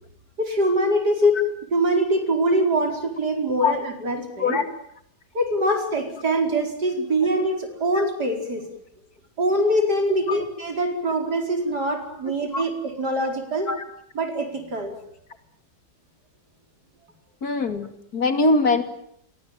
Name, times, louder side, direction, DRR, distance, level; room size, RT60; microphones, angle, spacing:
voice 1, 0.4-1.4 1.7-4.6 5.3-8.7 9.4-13.7 14.2-14.9, right 1 dB, 70° right, 6 dB, 5.3 m, -23 dB
voice 2, 17.4-18.8, left 3 dB, 60° left, 9 dB, 3.1 m, -22 dB
28.0 x 23.5 x 9.0 m, 0.70 s
omnidirectional pair, 1.8 m